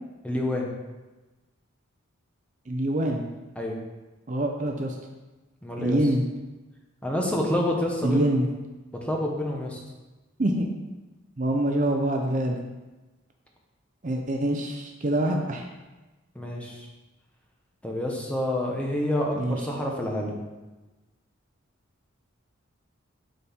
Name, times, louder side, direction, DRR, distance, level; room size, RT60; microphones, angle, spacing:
voice 1, 0.2-0.7 3.6-3.8 5.6-6.0 7.0-8.4 9.0-9.8 16.3-16.9 17.8-20.4, left 1 dB, 5° left, -1 dB, 1.0 m, -28 dB
voice 2, 2.7-3.2 4.3-4.9 5.8-6.2 8.0-8.5 10.4-10.7 11.4-12.6 14.0-15.7 19.3-19.6, right 1 dB, 35° right, 2 dB, 0.6 m, -25 dB
11.5 x 4.3 x 3.6 m, 1.1 s
head